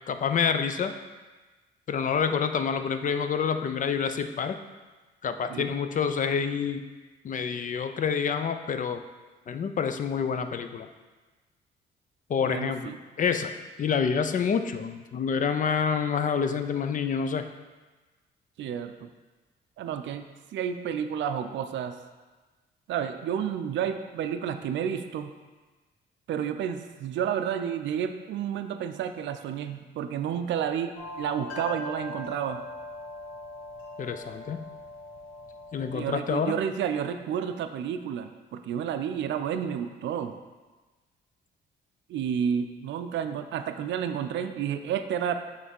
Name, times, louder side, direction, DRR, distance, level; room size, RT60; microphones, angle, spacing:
voice 1, 0.1-0.9 1.9-4.6 5.2-6.8 7.2-9.0 9.5-10.9 12.3-13.5 13.8-17.4 34.0-34.7 35.7-36.6, left 6 dB, 40° left, 9 dB, 0.5 m, -27 dB
voice 2, 12.4-13.0 18.6-19.1 19.8-20.3 20.5-22.0 22.9-25.3 26.3-32.6 35.9-40.4 42.1-45.3, right 8 dB, 65° right, 8 dB, 0.5 m, -31 dB
sound 1, 31.0-36.3, left 2 dB, 75° left, 2.0 m, -41 dB
6.3 x 3.3 x 5.3 m, 1.3 s
cardioid pair, 90°, 20 cm